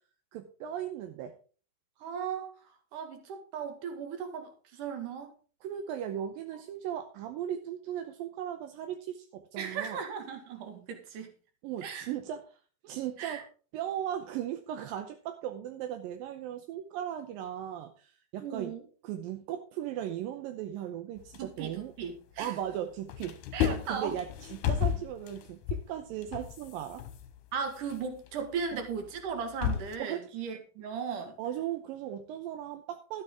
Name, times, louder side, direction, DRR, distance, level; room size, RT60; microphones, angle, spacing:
voice 1, 0.3-1.3 5.6-10.0 11.6-12.4 12.8-13.5 13.7-18.7 19.0-21.9 22.4-23.4 23.7-27.0 28.7-28.8 30.0-30.3 31.4-33.2, right 10 dB, 80° right, 6 dB, 2.5 m, -37 dB
voice 2, 2.0-5.3 9.6-11.3 11.8-12.1 13.2-13.4 18.4-18.8 21.4-22.6 23.5-24.2 27.5-31.4, right 6 dB, 65° right, 5 dB, 3.2 m, -37 dB
sound 1, 21.2-22.7 23.0-30.0, left 9 dB, 70° left, 2.3 m, -34 dB
12.5 x 9.4 x 3.7 m, 0.39 s
omnidirectional pair, 4.1 m